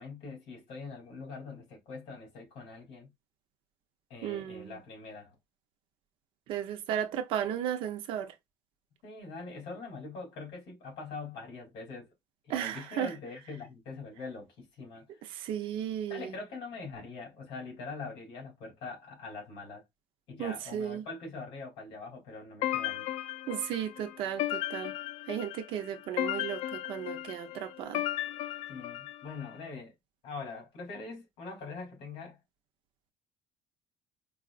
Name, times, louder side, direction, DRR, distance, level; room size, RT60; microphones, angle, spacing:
voice 1, 0.0-3.1 4.1-5.3 9.0-12.1 12.4-15.0 16.1-19.8 20.3-23.1 28.7-29.9 30.2-32.4, left 3 dB, 60° left, 2.7 m, -43 dB
voice 2, 4.2-4.7 6.5-8.3 12.5-13.1 15.4-16.3 20.4-21.0 23.5-24.9 25.3-28.0, right 10 dB, 60° right, 0.6 m, -34 dB
sound 1, 22.6-29.5, left 14 dB, 75° left, 0.4 m, -36 dB
4.8 x 2.4 x 2.4 m
cardioid pair, 170°, 10 cm